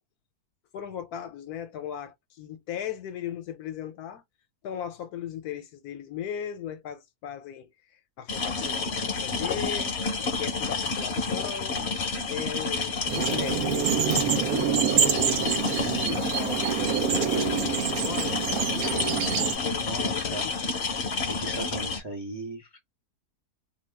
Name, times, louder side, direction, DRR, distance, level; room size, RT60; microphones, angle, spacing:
voice 1, 0.7-4.2 4.6-11.9 12.3-19.2 19.5-20.5, left 9 dB, 75° left, 1.1 m, -38 dB
sound 1, 8.3-22.0, left 4 dB, 50° left, 0.9 m, -30 dB
sound 2, 13.1-19.5, right 9 dB, 70° right, 1.1 m, -26 dB
voice 2, 19.8-20.5 21.2-22.8, right 2 dB, 35° right, 0.4 m, -37 dB
2.8 x 2.3 x 3.3 m
omnidirectional pair, 1.7 m